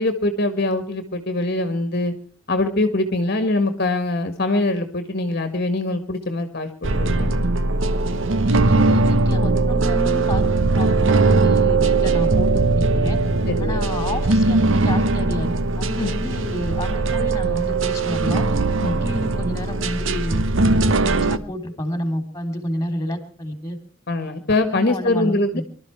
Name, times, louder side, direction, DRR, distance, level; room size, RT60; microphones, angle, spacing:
voice 1, 0.0-2.1 2.5-7.4 13.5-13.8 16.0-16.1 18.8-19.0 24.1-25.6, left 2 dB, 50° left, 9 dB, 1.6 m, -23 dB
sound 1, 6.8-21.4, right 3 dB, 65° right, 1.0 m, -20 dB
voice 2, 8.4-10.4 10.7-13.2 13.6-18.5 18.8-23.8 24.5-25.7, left 1 dB, 15° left, 8 dB, 3.2 m, -30 dB
24.5 x 13.0 x 4.5 m, 0.41 s
head